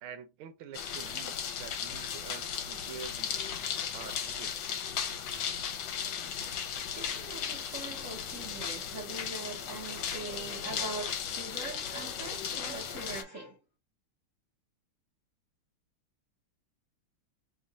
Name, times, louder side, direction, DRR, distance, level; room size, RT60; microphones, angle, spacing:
voice 1, 0.0-3.4 3.9-4.5, right 8 dB, 75° right, 1.5 m, -47 dB
sound 1, 0.7-13.2, left 8 dB, 70° left, 1.6 m, -36 dB
voice 2, 6.9-13.6, right 2 dB, 50° right, 1.0 m, -42 dB
3.7 x 2.4 x 3.9 m
omnidirectional pair, 2.4 m